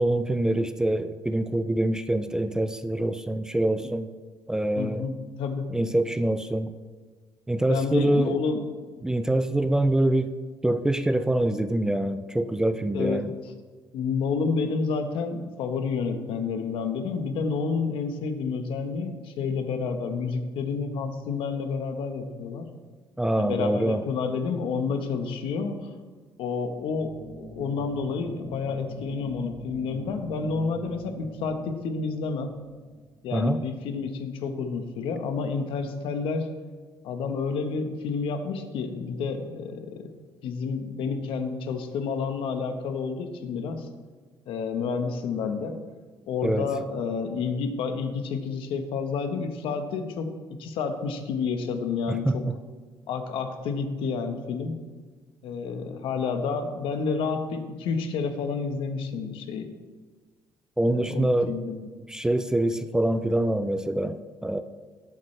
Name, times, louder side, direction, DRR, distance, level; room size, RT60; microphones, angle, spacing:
voice 1, 0.0-4.1 4.5-5.1 5.7-6.7 7.5-8.4 9.0-10.3 10.6-13.3 23.2-24.0 33.3-33.6 46.4-46.7 52.1-52.5 60.8-61.5 62.1-64.6, right 1 dB, 5° right, 10 dB, 0.4 m, -25 dB
voice 2, 4.7-5.7 7.7-8.6 12.9-13.3 13.9-22.7 23.4-25.9 26.4-32.5 33.2-36.5 37.0-40.1 40.4-43.9 44.5-45.8 46.3-50.3 50.6-52.4 53.1-54.8 55.4-59.7 60.9-61.9, left 5 dB, 70° left, 7 dB, 1.2 m, -29 dB
sound 1, 26.7-33.4, right 1 dB, 55° right, 3.2 m, -45 dB
17.5 x 8.6 x 3.3 m, 1.4 s
cardioid pair, 145°, 9 cm